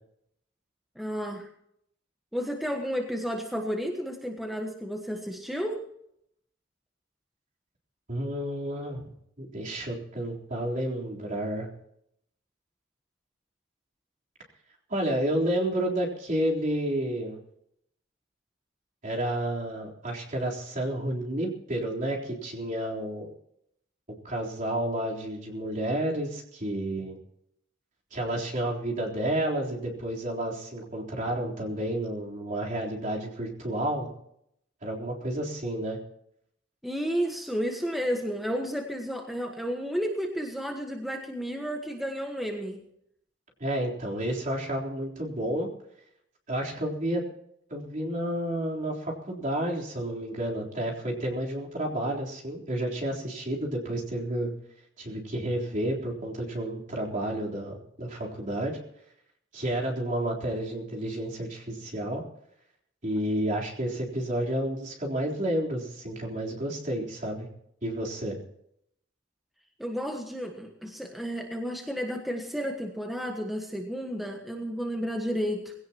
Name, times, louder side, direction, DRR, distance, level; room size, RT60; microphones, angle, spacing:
voice 1, 0.9-1.5 2.3-5.9 36.8-42.8 69.8-75.7, equal, ahead, 2 dB, 1.4 m, -32 dB
voice 2, 8.1-9.1 9.4-11.7 14.9-17.4 19.0-23.3 24.2-27.2 28.1-34.1 34.8-36.0 43.6-45.7 46.5-47.2 47.7-54.5 55.0-58.8 59.5-62.2 63.0-67.5 67.8-68.4, right 1 dB, 40° right, -2 dB, 3.8 m, -30 dB
20.5 x 17.0 x 3.0 m, 0.74 s
head